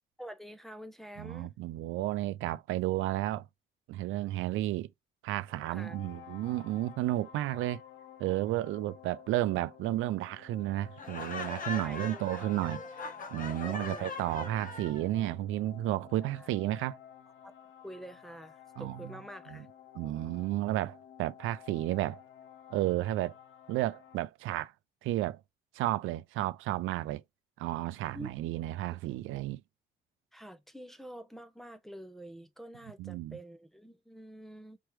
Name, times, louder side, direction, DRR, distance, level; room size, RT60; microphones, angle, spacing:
voice 1, 0.2-1.6 5.7-6.0 11.8-12.5 13.6-14.3 16.4-16.5 17.4-17.5 17.8-19.7 28.1-28.3 28.9-29.0 30.3-34.8, equal, ahead, 0.8 m, -47 dB
voice 2, 1.2-3.5 3.9-4.9 5.2-7.8 8.2-12.8 13.3-17.0 18.8-19.0 19.5-19.6 20.0-22.2 22.7-23.3 23.7-24.7 25.0-25.4 25.7-27.2 27.6-29.6 33.0-33.4, right 15 dB, 85° right, 0.4 m, -32 dB
sound 1, 5.5-24.3, left 9 dB, 75° left, 0.6 m, -53 dB
Laughter, 11.0-15.0, left 3 dB, 45° left, 1.0 m, -40 dB
4.6 x 3.0 x 3.1 m
cardioid pair, 90°, 20 cm